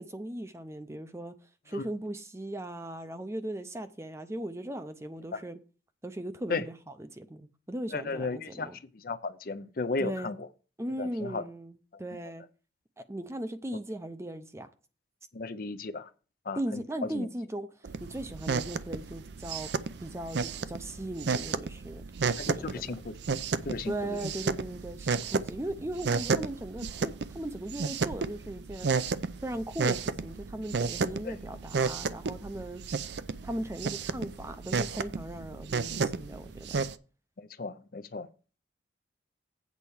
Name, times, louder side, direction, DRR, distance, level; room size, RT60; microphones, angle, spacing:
voice 1, 0.0-1.3 1.7-5.6 6.0-8.8 10.0-10.3 10.8-12.4 13.0-14.7 16.6-17.7 18.0-19.7 20.0-22.0 22.5-23.0 23.9-28.9 29.4-33.1 33.4-36.8, right 1 dB, 15° right, 0.5 m, -38 dB
voice 2, 7.9-8.7 8.9-10.4 11.0-11.4 15.3-16.1 16.5-16.8 17.1-17.3 22.4-23.2 23.6-24.2 31.2-31.4 37.4-38.3, left 3 dB, 50° left, 0.5 m, -35 dB
sound 1, 17.8-36.9, right 5 dB, 65° right, 0.5 m, -33 dB
8.4 x 4.4 x 7.1 m
head